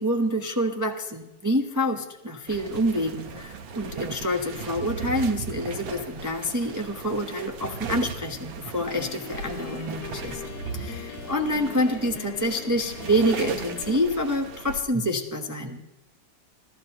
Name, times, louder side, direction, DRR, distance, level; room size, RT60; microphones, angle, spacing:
voice 1, 0.0-10.4 10.7-15.8, equal, 25° right, 2 dB, 0.4 m, -27 dB
sound 1, 2.5-14.8, right 5 dB, 85° right, 1.9 m, -37 dB
Piano, 8.9-14.1, left 11 dB, 90° left, 1.5 m, -41 dB
28.5 x 14.0 x 3.0 m, 0.97 s
omnidirectional pair, 2.1 m